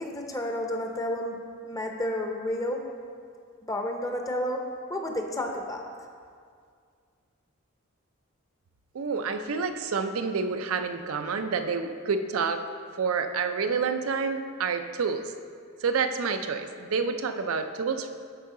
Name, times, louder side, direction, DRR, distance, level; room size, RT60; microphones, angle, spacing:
voice 1, 0.0-2.8 3.6-4.6 4.9-5.8, left 1 dB, 15° left, 2 dB, 0.6 m, -31 dB
voice 2, 8.9-12.6 13.0-15.3 15.8-18.1, right 5 dB, 90° right, 8 dB, 0.5 m, -28 dB
12.5 x 4.7 x 3.7 m, 2.2 s
head